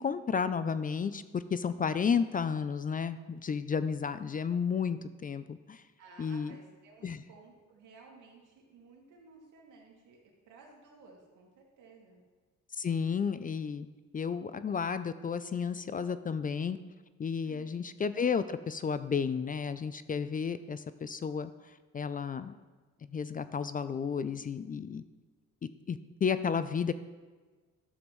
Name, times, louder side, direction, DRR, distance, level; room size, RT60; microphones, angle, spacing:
voice 1, 0.0-5.8 6.2-6.6 7.0-7.2 12.8-13.9 14.1-16.8 17.2-21.5 21.9-22.5 23.1-25.0 25.9-26.9, left 6 dB, 30° left, 13 dB, 0.4 m, -32 dB
voice 2, 6.0-10.2 10.5-12.2 17.4-17.8, right 3 dB, 85° right, -1 dB, 2.2 m, -56 dB
12.0 x 7.2 x 3.1 m, 1.4 s
cardioid pair, 90°, 30 cm